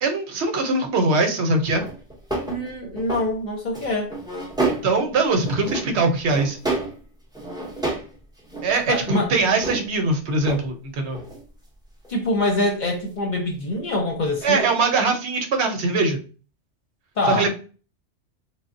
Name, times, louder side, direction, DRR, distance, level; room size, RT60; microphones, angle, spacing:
voice 1, 0.0-1.8 4.8-6.6 8.6-11.2 14.4-16.2 17.3-17.5, right 3 dB, 70° right, 0.9 m, -22 dB
sound 1, 1.7-3.3 3.7-5.1 5.3-6.0 6.3-7.0 7.3-8.1 8.4-9.9 10.4-10.7 11.0-11.5 12.0-12.1 14.6-14.7, right 2 dB, 5° right, 0.3 m, -29 dB
voice 2, 2.5-4.1 8.9-9.3 12.1-14.7 17.2-17.5, left 2 dB, 50° left, 0.6 m, -24 dB
3.4 x 2.0 x 2.4 m
omnidirectional pair, 1.2 m